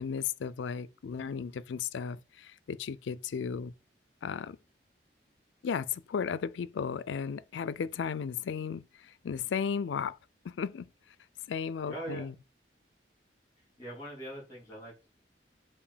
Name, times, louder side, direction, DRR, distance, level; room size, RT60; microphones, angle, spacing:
voice 1, 0.0-3.7 4.2-4.6 5.6-10.2 10.4-10.9 11.5-12.3, left 6 dB, 90° left, 0.4 m, -35 dB
voice 2, 11.8-12.3 13.6-15.1, right 1 dB, 20° left, 3.5 m, -42 dB
7.2 x 2.6 x 5.0 m
head